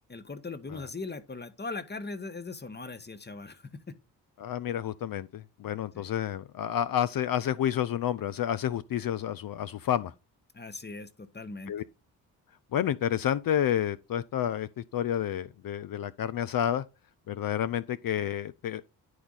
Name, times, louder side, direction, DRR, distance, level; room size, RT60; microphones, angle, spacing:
voice 1, 0.1-3.9 5.9-6.1 10.5-11.7, left 3 dB, 20° left, 1.2 m, -39 dB
voice 2, 4.4-10.1 11.7-11.8 12.7-16.8 17.3-18.8, left 10 dB, 45° left, 0.6 m, -30 dB
9.8 x 4.6 x 4.0 m
hypercardioid pair, 40°, 49 cm